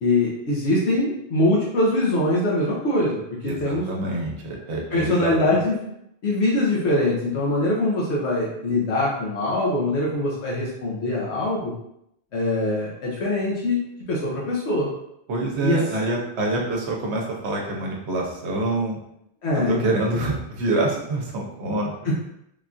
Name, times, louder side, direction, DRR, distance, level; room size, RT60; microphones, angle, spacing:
voice 1, 0.0-4.1 4.9-5.8 6.2-11.7 12.3-13.8 14.1-14.9 15.6-15.8 19.4-19.8 22.0-22.1, left 2 dB, 80° left, -5 dB, 1.0 m, -23 dB
voice 2, 3.4-5.3 15.3-19.0 19.5-21.9, right 2 dB, 75° right, -1 dB, 1.0 m, -26 dB
3.4 x 2.3 x 2.5 m, 0.79 s
omnidirectional pair, 1.1 m